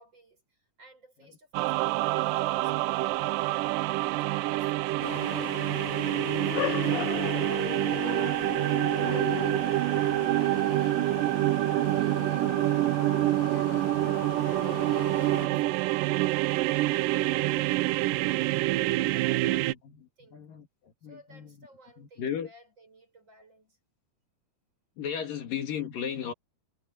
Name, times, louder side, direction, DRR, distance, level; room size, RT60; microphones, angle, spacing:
voice 1, 0.0-5.5 6.0-13.0 13.5-19.8 20.2-20.5 21.0-23.8, right 1 dB, 30° right, 7.1 m, -55 dB
sound 1, 1.5-19.7, right 17 dB, 80° right, 2.0 m, -27 dB
sound 2, 5.0-15.5, left 13 dB, 90° left, 2.9 m, -37 dB
voice 2, 15.3-15.6 19.8-21.7 22.0-22.5 25.0-26.3, left 8 dB, 65° left, 3.7 m, -36 dB
omnidirectional pair, 4.3 m